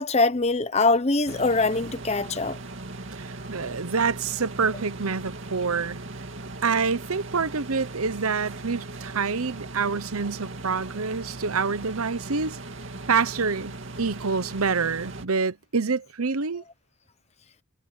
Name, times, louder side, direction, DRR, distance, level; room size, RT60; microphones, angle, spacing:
voice 1, 0.0-2.6, left 3 dB, 30° left, 0.8 m, -23 dB
sound 1, 1.3-15.3, right 2 dB, 60° right, 2.5 m, -39 dB
voice 2, 3.1-6.0 6.6-12.6 13.1-16.6, right 5 dB, 80° right, 1.0 m, -27 dB
head